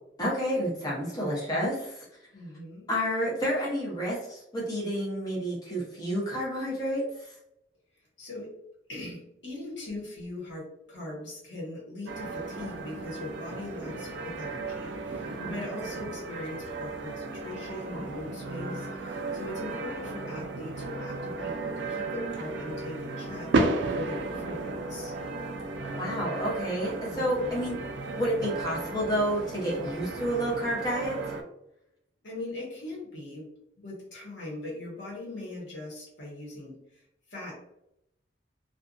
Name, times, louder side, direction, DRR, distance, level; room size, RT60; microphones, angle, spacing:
voice 1, 0.2-2.1 2.9-7.3 15.2-15.7 17.9-18.2 25.9-31.2, equal, 20° left, -6 dB, 0.7 m, -30 dB
voice 2, 2.3-2.9 8.2-8.5 8.9-25.1 27.1-27.5 32.2-37.6, left 2 dB, 85° left, -3 dB, 1.0 m, -40 dB
sound 1, 12.1-31.4, right 3 dB, 80° right, 0.3 m, -34 dB
2.5 x 2.3 x 2.4 m, 0.80 s
head